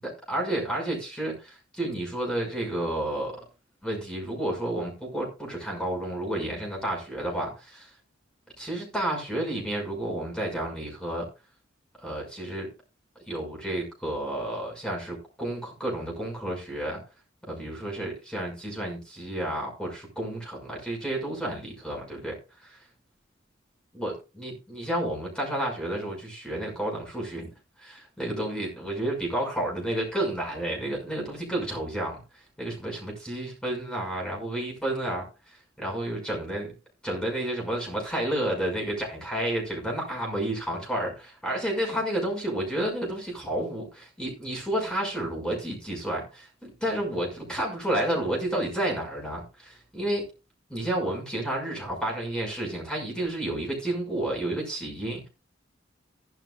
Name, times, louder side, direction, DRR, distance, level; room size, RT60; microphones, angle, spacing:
voice 1, 0.0-3.4 3.8-7.9 8.6-11.3 12.0-12.7 13.3-17.0 17.5-22.8 23.9-32.2 32.6-36.7 37.0-50.3 50.7-55.3, right 1 dB, 5° left, 0 dB, 5.8 m, -31 dB
15.5 x 11.5 x 2.4 m, 0.30 s
head